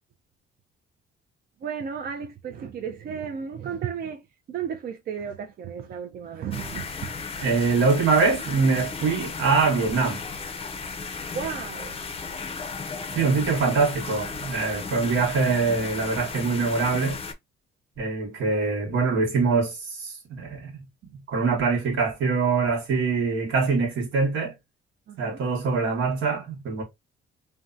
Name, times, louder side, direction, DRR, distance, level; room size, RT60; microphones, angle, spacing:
voice 1, 1.6-6.9 11.3-12.0 13.1-13.3 25.1-25.4, right 7 dB, 50° right, 0.4 m, -34 dB
sound 1, 6.5-17.3, left 4 dB, 30° left, 0.5 m, -35 dB
voice 2, 7.4-10.2 13.1-17.2 18.0-20.8 21.1-24.5 25.2-26.8, right 4 dB, 80° right, 1.1 m, -24 dB
2.6 x 2.2 x 2.4 m
cardioid pair, 90°, 20 cm